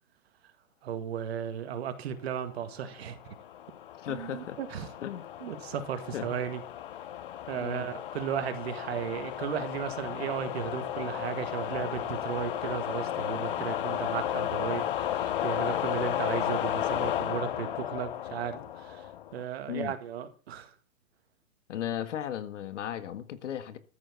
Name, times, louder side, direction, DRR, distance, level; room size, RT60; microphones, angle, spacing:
voice 1, 0.8-3.2 4.1-4.9 5.4-6.6 7.5-20.7, right 9 dB, 45° right, 2.0 m, -35 dB
sound 1, 3.0-19.4, left 11 dB, 40° left, 0.6 m, -34 dB
voice 2, 4.0-4.6 5.0-5.3 6.1-6.3 7.6-7.9 19.7-19.9 21.7-23.8, left 10 dB, 55° left, 1.8 m, -36 dB
14.0 x 7.1 x 7.0 m
hypercardioid pair, 155°, 43 cm